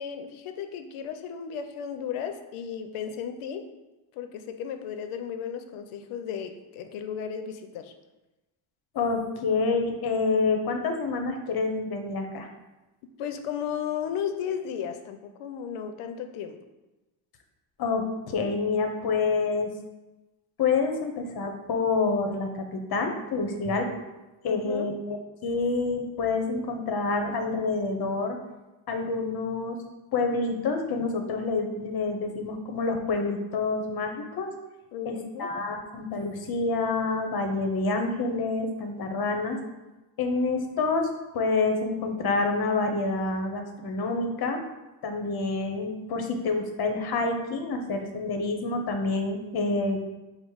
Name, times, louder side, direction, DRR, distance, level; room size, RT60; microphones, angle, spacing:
voice 1, 0.0-3.7 4.2-7.9 13.2-16.6 24.5-24.9 34.9-35.5, left 8 dB, 85° left, 7 dB, 0.6 m, -34 dB
voice 2, 8.9-12.5 17.8-19.7 20.6-23.9 24.4-25.2 25.4-28.4 28.9-29.8 30.1-34.5 35.0-39.6 40.2-41.1 41.3-44.6 45.0-50.0, left 3 dB, 50° left, 5 dB, 0.9 m, -27 dB
5.2 x 2.1 x 4.7 m, 1.1 s
cardioid pair, 80°, 48 cm